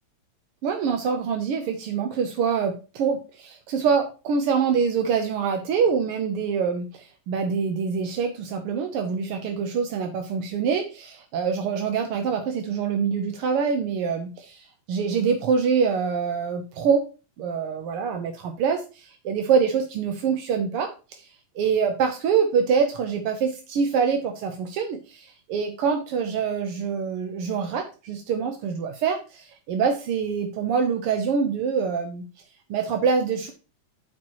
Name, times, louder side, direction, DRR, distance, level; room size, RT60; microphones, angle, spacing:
voice 1, 0.6-17.0 17.4-21.3 21.5-32.2 32.7-33.5, right 6 dB, 75° right, 5 dB, 1.4 m, -25 dB
12.0 x 4.4 x 2.9 m, 0.32 s
omnidirectional pair, 3.4 m